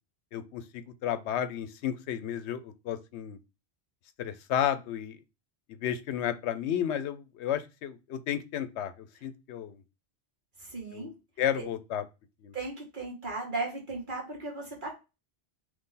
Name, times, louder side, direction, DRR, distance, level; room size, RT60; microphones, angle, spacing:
voice 1, 0.3-3.4 4.2-5.2 5.8-9.8 10.9-11.1 11.4-12.0 12.4-12.5, left 10 dB, 90° left, 11 dB, 0.9 m, -32 dB
voice 2, 10.6-11.1 11.5-11.6 12.5-14.9, right 3 dB, 50° right, -2 dB, 1.8 m, -36 dB
3.7 x 3.1 x 4.0 m, 0.28 s
omnidirectional pair, 1.1 m